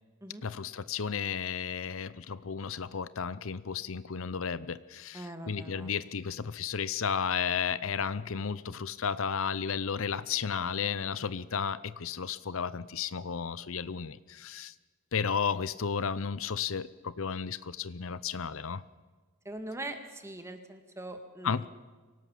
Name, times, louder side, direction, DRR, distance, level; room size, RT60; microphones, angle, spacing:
voice 1, 0.4-14.7 15.1-18.8 21.4-21.7, left 6 dB, 70° left, 17 dB, 0.7 m, -33 dB
voice 2, 5.1-5.9 19.4-21.7, right 1 dB, 15° right, 7 dB, 2.1 m, -42 dB
24.5 x 18.0 x 7.3 m, 1.4 s
head